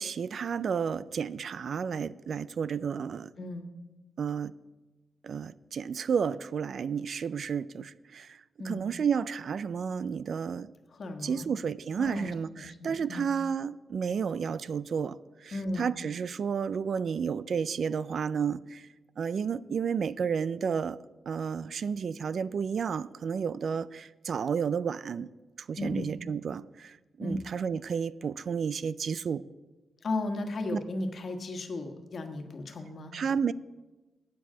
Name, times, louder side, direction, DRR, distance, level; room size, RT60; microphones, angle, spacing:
voice 1, 0.0-3.3 4.2-4.5 5.2-10.7 11.2-18.9 19.2-21.0 21.3-25.3 25.6-29.4 33.1-33.5, right 6 dB, 60° right, 0.3 m, -32 dB
voice 2, 10.9-11.5 12.0-13.3 15.5-15.9 25.8-26.1 27.2-27.5 30.0-33.1, left 2 dB, 50° left, 1.4 m, -35 dB
8.2 x 7.5 x 8.4 m
cardioid pair, 110°, 0 cm